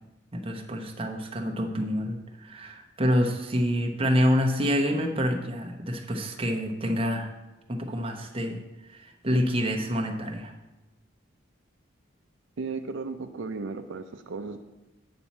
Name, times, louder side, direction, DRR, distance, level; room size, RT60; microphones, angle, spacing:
voice 1, 0.3-7.3 7.7-10.5, equal, 30° right, 3 dB, 0.9 m, -27 dB
voice 2, 12.6-14.6, right 4 dB, 75° right, 7 dB, 0.5 m, -35 dB
8.8 x 4.2 x 7.1 m, 1.0 s
head